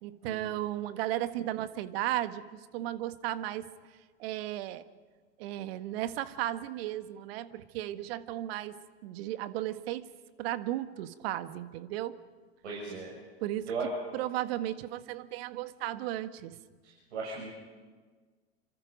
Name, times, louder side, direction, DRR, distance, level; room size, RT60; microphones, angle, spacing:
voice 1, 0.0-2.5 2.7-3.7 4.2-4.8 5.4-8.8 9.0-10.0 10.4-12.1 13.4-13.7 14.1-16.5, right 14 dB, 60° right, 11 dB, 1.5 m, -35 dB
voice 2, 12.6-13.1 13.7-13.9 17.1-17.5, right 4 dB, 80° right, -3 dB, 6.9 m, -36 dB
28.0 x 25.5 x 5.2 m, 1.4 s
hypercardioid pair, 95°, 33 cm